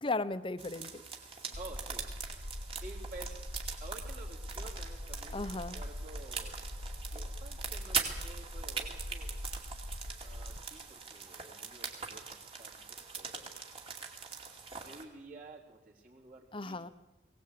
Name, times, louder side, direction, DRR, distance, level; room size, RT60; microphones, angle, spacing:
voice 1, 0.0-1.0 1.4-1.6 5.3-5.8 16.5-16.9, left 2 dB, 30° left, 14 dB, 0.8 m, -36 dB
sound 1, 0.6-15.0, right 5 dB, 30° right, 2.6 m, -42 dB
sound 2, 1.5-10.6, left 1 dB, 85° left, 1.7 m, -42 dB
voice 2, 1.6-2.1 2.8-3.5 3.8-9.5 10.2-13.6 14.8-16.8, right 2 dB, 50° right, -3 dB, 3.9 m, -51 dB
21.0 x 18.0 x 8.5 m, 1.1 s
head